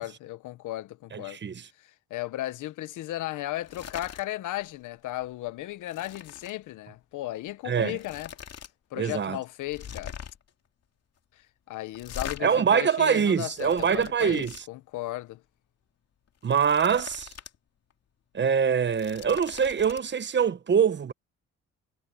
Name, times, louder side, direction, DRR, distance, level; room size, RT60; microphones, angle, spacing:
voice 1, 0.0-1.4 1.8-8.3 8.9-10.1 11.4-15.4, left 15 dB, 85° left, 1.1 m, -35 dB
voice 2, 1.1-1.6 7.7-8.0 9.0-9.4 12.4-14.5 16.4-17.3 18.3-21.1, right 7 dB, 35° right, 1.0 m, -24 dB
sound 1, 3.6-4.3 4.6-4.9 5.2-6.6 7.5-7.6 7.9-8.7 9.0-9.1 9.7-10.5 11.9-12.4 13.2-14.6 16.3-17.6 17.9-18.0 18.7-20.0, left 8 dB, 55° left, 2.7 m, -42 dB
cardioid pair, 90°, 30 cm